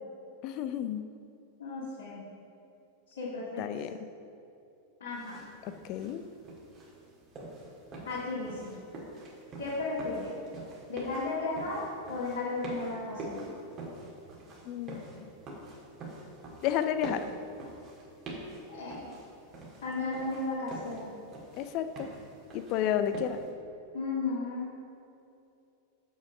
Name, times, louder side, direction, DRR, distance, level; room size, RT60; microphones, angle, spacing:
voice 1, 0.4-1.0 3.6-3.9 5.6-6.2 14.7-15.1 16.6-17.2 21.6-22.1 22.5-23.4, left 10 dB, 40° left, 10 dB, 0.4 m, -31 dB
voice 2, 1.6-2.2 3.2-3.7 5.0-5.4 8.1-8.7 9.6-10.4 10.9-11.8 12.1-13.5 18.7-19.0 19.8-21.1 23.9-24.7, left 3 dB, 65° left, -9 dB, 1.8 m, -34 dB
sound 1, 5.1-23.5, right 2 dB, 35° right, 1.8 m, -46 dB
7.1 x 6.2 x 5.0 m, 2.7 s
figure-of-eight pair, 90°, 0 cm